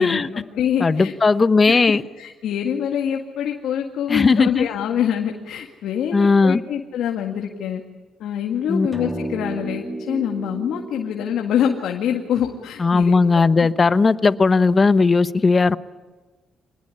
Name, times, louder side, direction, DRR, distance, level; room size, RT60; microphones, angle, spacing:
voice 1, 0.0-1.1 1.7-1.8 2.2-7.8 8.2-13.1, left 9 dB, 80° left, 2 dB, 2.0 m, -25 dB
voice 2, 0.8-2.0 4.1-4.7 6.1-6.6 8.7-8.9 12.8-15.8, left 4 dB, 30° left, 13 dB, 1.0 m, -17 dB
sound 1, 8.9-13.5, right 1 dB, ahead, 2.4 m, -33 dB
26.0 x 19.5 x 9.9 m, 1.3 s
cardioid pair, 90°, 0 cm